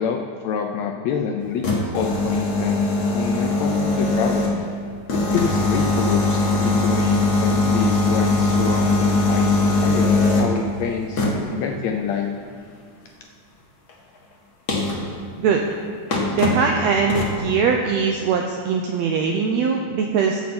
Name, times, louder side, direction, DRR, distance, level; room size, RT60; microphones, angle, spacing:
voice 1, 0.0-2.9 3.1-4.5 5.1-12.4, left 7 dB, 80° left, 3 dB, 1.6 m, -27 dB
sound 1, 1.4-4.7 5.1-10.6 11.2-11.5 13.9-14.0 14.7-15.1 15.7-15.8 16.1-16.7 17.1-17.4, left 2 dB, 50° left, 1.2 m, -21 dB
voice 2, 16.3-20.4, right 5 dB, 85° right, 2 dB, 1.5 m, -21 dB
14.0 x 7.6 x 4.4 m, 2.2 s
omnidirectional pair, 3.7 m